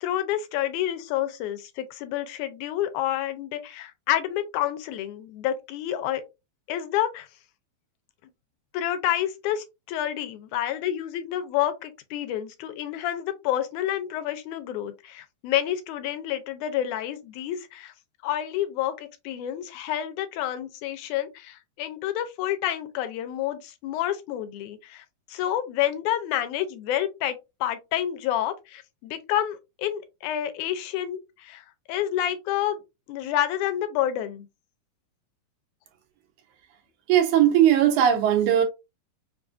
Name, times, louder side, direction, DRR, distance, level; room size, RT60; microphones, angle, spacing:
voice 1, 0.0-6.2 6.7-7.3 8.7-17.9 18.2-25.0 25.3-32.8 33.1-34.5, left 12 dB, 85° left, 2.1 m, -29 dB
voice 2, 37.1-38.6, right 10 dB, 90° right, 2.3 m, -19 dB
5.2 x 2.5 x 2.4 m
omnidirectional pair, 3.4 m